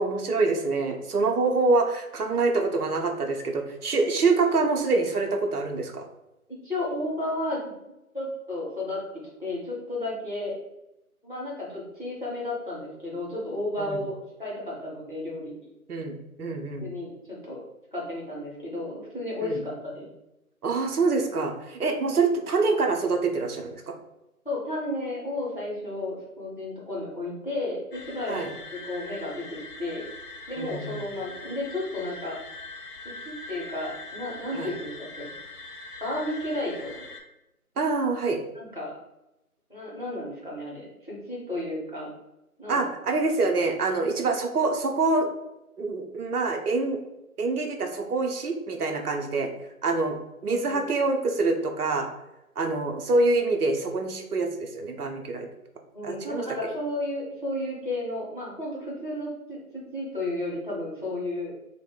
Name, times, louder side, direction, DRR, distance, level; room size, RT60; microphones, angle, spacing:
voice 1, 0.0-6.0 13.8-14.0 15.9-16.9 19.4-19.6 20.6-23.8 28.3-28.5 30.6-31.0 34.5-34.7 37.8-38.4 42.7-45.3 45.8-47.0 47.4-49.5 49.8-52.1 52.6-55.5 56.0-56.4, right 3 dB, 75° right, 3 dB, 0.6 m, -25 dB
voice 2, 6.6-7.6 8.1-9.0 9.4-10.5 11.2-15.7 16.8-17.6 17.9-20.1 24.4-28.5 28.9-29.4 29.8-30.0 30.5-32.4 33.2-35.3 36.0-37.0 38.5-38.9 39.7-42.1 42.6-42.9 50.5-50.8 55.9-61.5, left 1 dB, 35° left, -6 dB, 0.7 m, -33 dB
sound 1, 27.9-37.2, left 2 dB, 85° left, 0.6 m, -42 dB
2.4 x 2.0 x 3.5 m, 0.91 s
figure-of-eight pair, 170°, 45 cm